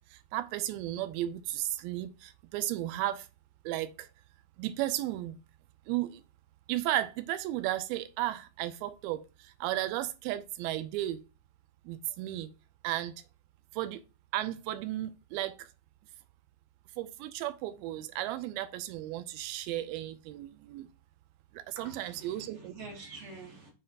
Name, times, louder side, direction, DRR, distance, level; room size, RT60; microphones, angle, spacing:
voice 1, 0.0-3.3 3.7-4.1 4.6-5.4 5.9-6.2 6.7-11.2 11.9-12.5 12.8-13.2 13.7-14.0 14.3-15.7 17.0-20.9 21.5-22.7, right 14 dB, 90° right, 2.5 m, -34 dB
voice 2, 21.8-23.7, right 3 dB, 40° right, 2.5 m, -47 dB
6.6 x 5.5 x 2.8 m
omnidirectional pair, 4.3 m